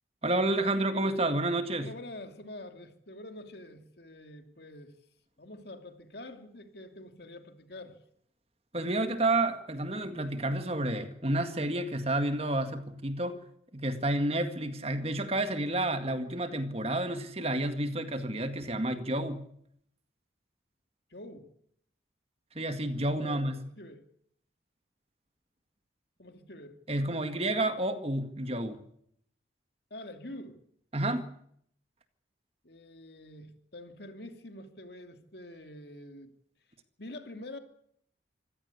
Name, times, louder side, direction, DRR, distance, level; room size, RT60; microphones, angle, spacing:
voice 1, 0.2-1.9 8.7-13.4 13.7-19.5 22.6-23.6 26.9-28.8 30.9-31.3, right 1 dB, 30° right, 2.0 m, -30 dB
voice 2, 1.8-4.9 5.4-8.0 21.1-21.5 23.1-24.0 26.2-26.8 29.9-30.6 32.6-36.3 37.0-37.6, left 1 dB, 60° left, 2.8 m, -46 dB
25.5 x 16.5 x 8.4 m
head